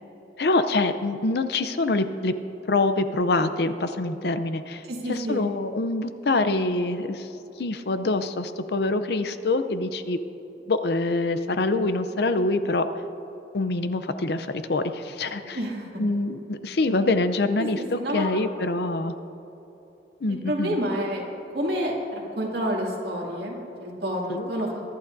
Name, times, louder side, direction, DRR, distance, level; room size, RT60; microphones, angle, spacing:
voice 1, 0.4-2.3 2.7-4.8 5.1-7.3 7.6-10.2 10.7-12.9 13.5-15.6 16.0-17.8 18.1-19.1 20.2-20.8 24.3-24.5, left 2 dB, 60° left, 10 dB, 0.6 m, -25 dB
voice 2, 4.8-5.5 15.5-15.9 17.8-18.3 20.3-21.2 21.5-24.8, equal, 60° right, -3 dB, 2.3 m, -29 dB
23.0 x 11.5 x 2.6 m, 3.0 s
head